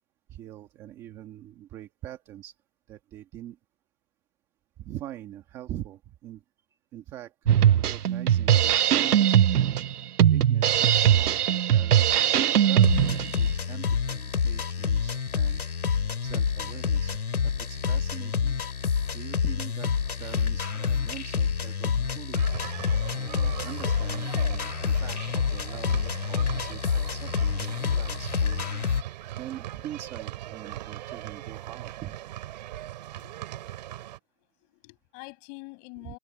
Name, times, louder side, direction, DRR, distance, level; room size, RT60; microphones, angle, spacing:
voice 1, 0.3-2.5 2.9-3.6 4.8-6.4 6.7-9.8 10.2-12.4 12.6-15.6 16.2-18.6 19.1-19.9 20.2-22.4 23.1-28.9 29.4-32.2 36.0-36.1, right 12 dB, 5° right, 1.3 m, -43 dB
Drum kit, 7.5-13.4, right 10 dB, 70° right, 0.6 m, -20 dB
sound 1, 12.8-29.0, left 6 dB, 65° left, 2.7 m, -28 dB
sound 2, 22.3-34.2, right 14 dB, 25° right, 5.8 m, -40 dB
voice 2, 33.2-33.8 34.6-36.2, left 35 dB, 15° left, 6.4 m, -46 dB
hypercardioid pair, 165°, 48 cm